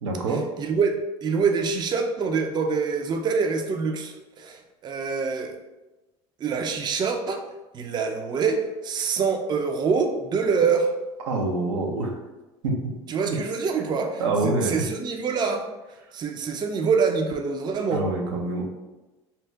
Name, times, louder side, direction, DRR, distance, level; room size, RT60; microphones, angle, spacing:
voice 1, 0.0-0.4 11.3-12.1 12.6-12.7 13.3-13.4 14.2-14.8 17.9-18.6, right 3 dB, 90° right, 1 dB, 0.5 m, -25 dB
voice 2, 0.6-5.5 6.4-7.4 7.7-10.9 13.1-15.7 16.1-18.1, right 5 dB, 30° right, 5 dB, 0.4 m, -25 dB
2.8 x 2.1 x 3.3 m, 1.1 s
hypercardioid pair, 80°, 15 cm